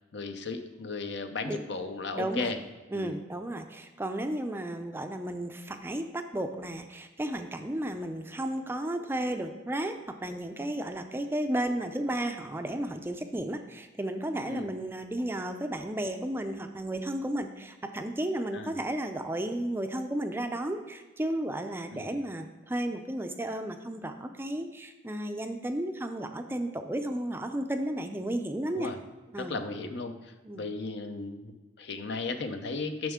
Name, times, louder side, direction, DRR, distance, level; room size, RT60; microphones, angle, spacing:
voice 1, 0.1-2.6 2.9-3.2 14.4-14.7 18.5-18.7 21.9-22.1 28.8-29.0 29.4-33.1, left 3 dB, 65° left, 8 dB, 0.6 m, -35 dB
voice 2, 2.1-2.5 2.9-28.9 29.3-29.6 30.4-30.7, right 1 dB, 10° right, 7 dB, 0.4 m, -33 dB
9.1 x 6.2 x 3.6 m, 1.2 s
head